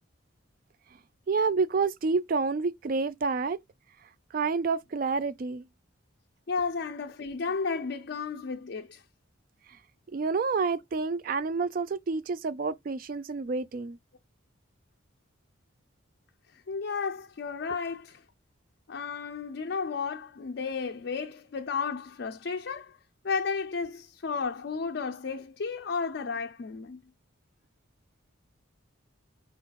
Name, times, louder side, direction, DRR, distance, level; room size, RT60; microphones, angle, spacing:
voice 1, 1.3-3.6 4.0-5.7 9.7-9.8 10.1-14.0, right 4 dB, 45° right, 0.3 m, -29 dB
voice 2, 6.5-9.0 16.5-18.2 18.9-23.0 23.2-27.0, left 5 dB, 55° left, 0.4 m, -33 dB
4.7 x 2.3 x 4.0 m
head